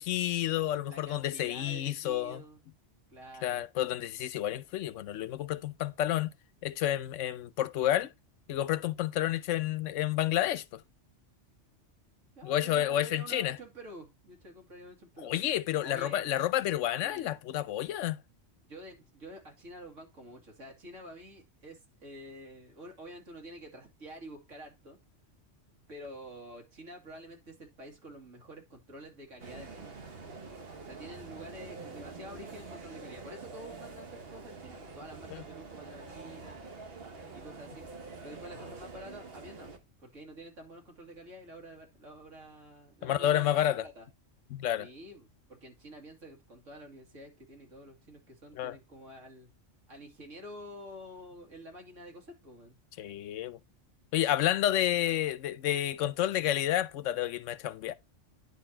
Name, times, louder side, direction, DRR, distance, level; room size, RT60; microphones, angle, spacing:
voice 1, 0.0-2.4 3.4-6.3 6.6-8.1 8.5-10.8 12.4-13.6 15.2-18.2 35.3-35.4 43.0-43.9 44.5-44.9 48.5-48.8 53.0-53.6 54.1-57.9, left 12 dB, 80° left, 0.9 m, -30 dB
voice 2, 0.8-2.6 3.1-3.6 12.3-15.3 15.8-16.3 16.9-17.4 18.6-25.0 25.9-30.0 30.8-36.6 37.3-39.7 40.0-44.1 44.8-49.5 49.9-52.8, right 1 dB, 85° right, 2.6 m, -48 dB
sound 1, 29.4-39.8, right 4 dB, 55° right, 1.3 m, -46 dB
9.9 x 4.2 x 4.3 m
omnidirectional pair, 1.3 m